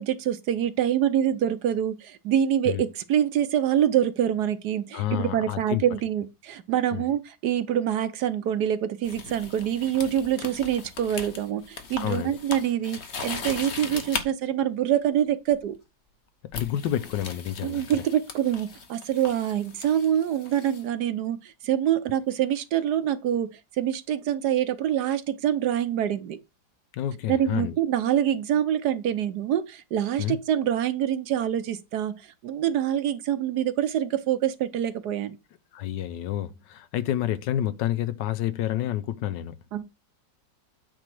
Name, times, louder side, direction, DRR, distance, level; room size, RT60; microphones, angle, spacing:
voice 1, 0.0-15.8 17.6-26.4 27.3-32.2 32.4-35.4 39.7-39.8, right 10 dB, 70° right, 1.2 m, -25 dB
voice 2, 4.9-5.8 6.9-7.1 12.0-12.4 16.5-18.0 26.9-27.7 30.2-30.4 35.7-39.6, left 12 dB, 75° left, 1.3 m, -29 dB
sound 1, 9.0-14.3 15.5-15.8 16.5-20.8, left 5 dB, 45° left, 1.2 m, -38 dB
8.8 x 3.2 x 6.0 m
omnidirectional pair, 2.0 m